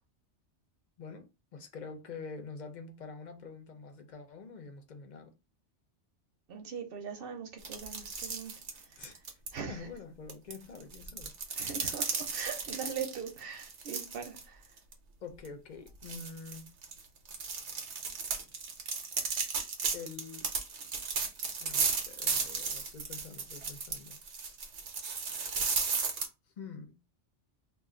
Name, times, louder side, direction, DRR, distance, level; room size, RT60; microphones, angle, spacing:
voice 1, 1.0-5.3 9.0-9.4 9.6-11.3 15.2-16.7 19.9-20.5 21.6-24.2 26.6-26.9, left 4 dB, 50° left, 0.6 m, -46 dB
voice 2, 6.5-8.5 9.0-9.1 9.5-9.9 11.6-14.6, right 6 dB, 60° right, 0.9 m, -41 dB
sound 1, 7.6-9.5 10.3-14.4 14.8-14.9 15.4-15.5 16.0-26.3, right 5 dB, 75° right, 1.1 m, -35 dB
2.4 x 2.4 x 3.7 m
omnidirectional pair, 1.2 m